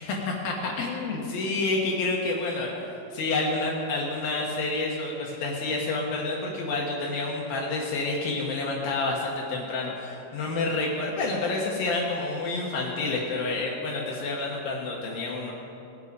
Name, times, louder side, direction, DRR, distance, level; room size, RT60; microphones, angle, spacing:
voice 1, 0.0-15.5, left 3 dB, 75° left, -2 dB, 2.1 m, -29 dB
20.0 x 8.5 x 5.3 m, 2.9 s
omnidirectional pair, 5.8 m